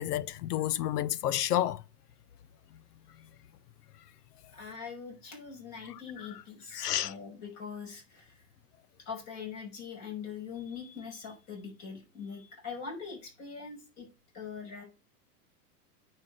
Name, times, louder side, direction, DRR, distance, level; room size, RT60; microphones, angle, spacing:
voice 1, 0.0-1.8 6.7-7.1, left 12 dB, 75° left, 0.8 m, -30 dB
voice 2, 4.5-8.4 9.1-14.1 14.3-14.8, left 6 dB, 35° left, 5.6 m, -42 dB
9.7 x 4.6 x 6.4 m
hypercardioid pair, 125°, 47 cm